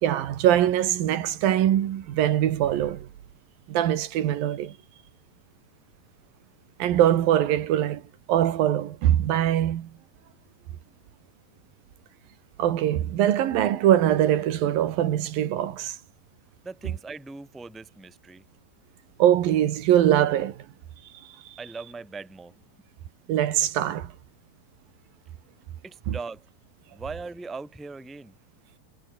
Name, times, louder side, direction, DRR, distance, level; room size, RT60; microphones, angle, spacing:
voice 1, 0.0-3.1 3.7-4.7 6.8-8.0 8.3-9.9 12.6-16.0 19.2-20.6 23.3-24.1 26.1-26.2, right 11 dB, 60° right, 3.1 m, -22 dB
voice 2, 16.6-18.4 21.6-22.5 25.8-26.4 26.9-28.3, right 4 dB, ahead, 1.5 m, -39 dB
omnidirectional pair, 5.0 m